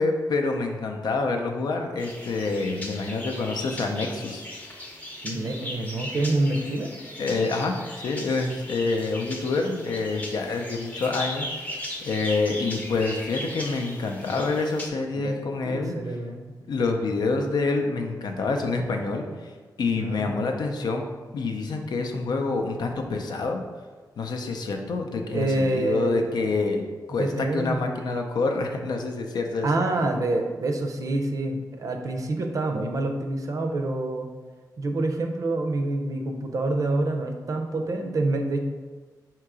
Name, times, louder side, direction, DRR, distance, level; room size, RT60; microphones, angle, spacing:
voice 1, 0.0-4.4 7.2-15.9 16.7-19.5 19.8-21.1 21.3-23.6 24.2-29.7, left 3 dB, 80° left, 4 dB, 0.5 m, -27 dB
sound 1, 2.0-14.9, left 1 dB, 20° left, 0.7 m, -38 dB
voice 2, 5.2-6.9 15.1-15.4 15.7-16.5 20.0-20.5 25.3-26.2 27.1-28.0 29.6-34.3 34.8-38.6, right 2 dB, 55° right, 4 dB, 0.5 m, -27 dB
3.6 x 2.9 x 4.8 m, 1.4 s
wide cardioid pair, 130°, 7 cm